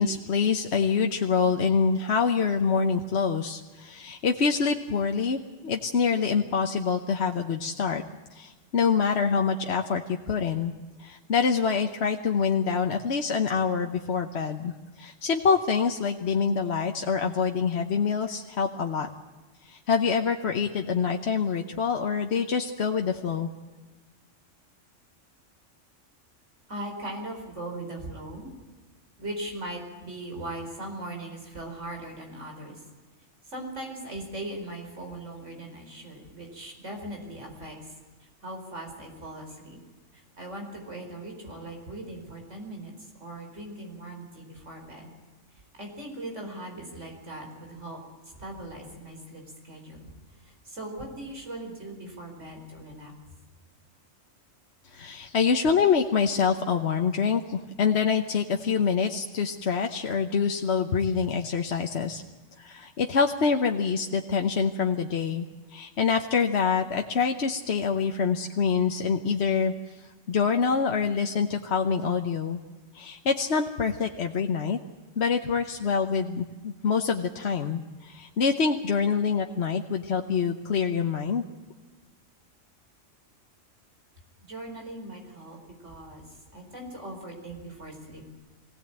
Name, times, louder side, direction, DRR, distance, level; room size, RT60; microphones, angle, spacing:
voice 1, 0.0-8.0 8.3-10.7 11.0-19.1 19.6-23.5 54.8-62.2 62.6-69.7 70.3-72.6 72.9-74.8 75.2-81.4, left 6 dB, 60° left, 4 dB, 1.2 m, -26 dB
voice 2, 26.7-28.5 29.2-32.8 33.4-37.9 38.2-39.8 40.1-45.1 45.7-48.0 48.4-50.1 50.4-53.1 84.4-88.3, right 1 dB, 70° right, 2 dB, 5.1 m, -39 dB
22.5 x 17.0 x 8.9 m, 1.3 s
omnidirectional pair, 1.3 m